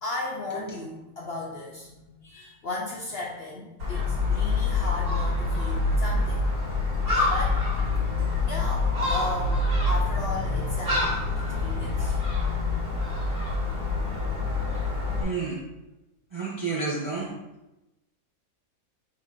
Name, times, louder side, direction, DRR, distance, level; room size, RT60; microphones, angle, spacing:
voice 1, 0.0-6.5 7.2-7.6 8.5-11.2 11.6-12.2, left 2 dB, 55° left, -3 dB, 0.7 m, -35 dB
Gull seagull, 3.8-15.2, left 3 dB, 75° right, 2.1 m, -26 dB
voice 2, 15.2-15.6 16.3-17.4, right 4 dB, 30° right, -5 dB, 0.5 m, -30 dB
3.8 x 2.8 x 4.8 m, 0.97 s
omnidirectional pair, 1.6 m